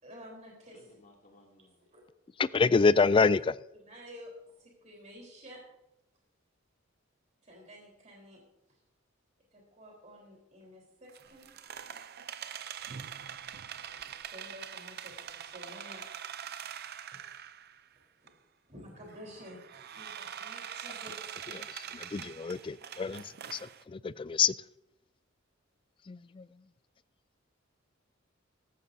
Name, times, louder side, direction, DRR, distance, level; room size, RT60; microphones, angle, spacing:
voice 1, 0.0-0.8 1.9-2.0 2.9-3.2 3.8-4.3 4.6-5.6 7.4-8.4 9.5-11.5 13.8-16.1 17.1-17.2 18.2-18.3 18.7-21.5, equal, 35° right, -1 dB, 4.0 m, -51 dB
voice 2, 0.7-1.8, left 1 dB, 40° left, 0 dB, 2.7 m, -59 dB
voice 3, 2.4-3.5 21.5-23.2 23.5-23.6 23.9-24.5 26.1-26.4, left 4 dB, 25° left, 18 dB, 0.3 m, -26 dB
sound 1, 11.1-17.9 18.3-18.4 19.1-23.8, right 8 dB, 50° right, 0.6 m, -44 dB
17.0 x 14.0 x 2.8 m, 0.87 s
head